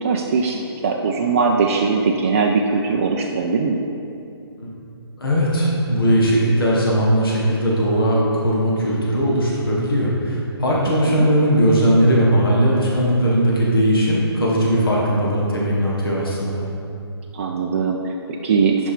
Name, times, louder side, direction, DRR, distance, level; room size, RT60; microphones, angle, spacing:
voice 1, 0.0-3.8 10.9-11.3 17.3-18.9, right 4 dB, 30° right, 0 dB, 0.4 m, -21 dB
voice 2, 5.2-16.6, equal, 55° left, -5 dB, 1.7 m, -18 dB
8.9 x 5.4 x 4.4 m, 2.6 s
figure-of-eight pair, 135°, 14 cm